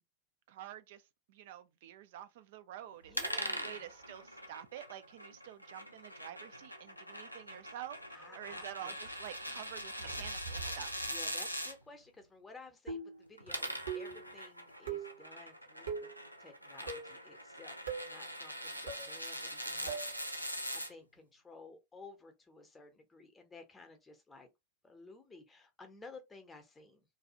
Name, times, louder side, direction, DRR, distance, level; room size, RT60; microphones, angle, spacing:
voice 1, 0.5-1.0 1.3-11.0, right 11 dB, 55° right, 0.4 m, -48 dB
voice 2, 3.0-3.8 8.1-9.0 11.0-16.1 16.4-17.8 18.0-24.5 24.8-27.0, left 3 dB, 15° left, 0.7 m, -55 dB
sound 1, 3.0-4.7 5.9-6.5 6.8-7.4 7.8-11.7 13.5-14.4, right 3 dB, 90° right, 1.4 m, -53 dB
sound 2, 3.1-11.7 13.3-20.9, equal, 90° left, 0.4 m, -42 dB
sound 3, 12.9-13.3 13.9-14.3 14.9-15.2 15.9-16.2 16.9-17.2 17.9-18.1 18.9-19.1 19.9-20.1, right 5 dB, 70° right, 0.9 m, -40 dB
2.6 x 2.3 x 2.8 m
figure-of-eight pair, 90°, 0 cm